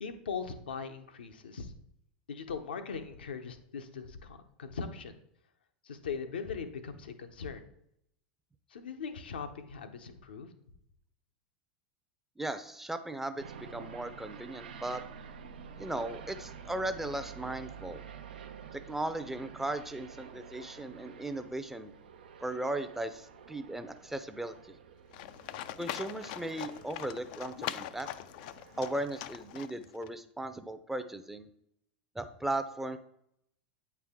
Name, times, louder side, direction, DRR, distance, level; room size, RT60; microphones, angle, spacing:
voice 1, 0.0-1.7 2.3-5.2 5.8-7.6 8.7-10.5, left 5 dB, 80° left, 7 dB, 0.7 m, -40 dB
voice 2, 12.4-15.0 15.8-18.0 18.7-21.9 22.4-24.6 25.8-28.1 28.8-31.5 32.2-33.0, right 1 dB, 5° right, 10 dB, 0.6 m, -37 dB
sound 1, 13.4-29.6, right 6 dB, 75° right, 0.6 m, -50 dB
Livestock farm animals working animals, 25.1-30.1, left 12 dB, 60° left, 0.4 m, -42 dB
8.5 x 4.7 x 3.6 m, 0.76 s
hypercardioid pair, 90°, 5 cm